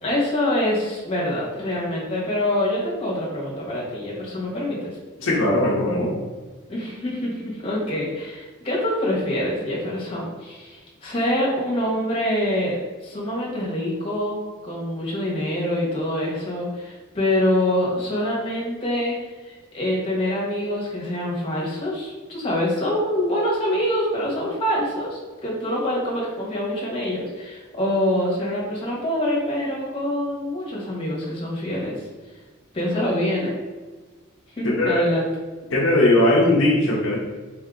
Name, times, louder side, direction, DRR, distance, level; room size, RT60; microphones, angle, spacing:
voice 1, 0.0-4.9 6.7-19.1 19.4-32.1 32.7-33.5 34.6-35.3, left 1 dB, 25° left, -5 dB, 1.3 m, -25 dB
voice 2, 5.2-6.1 34.8-35.0 35.7-37.2, left 1 dB, 60° left, -5 dB, 0.8 m, -19 dB
4.2 x 2.8 x 3.6 m, 1.3 s
head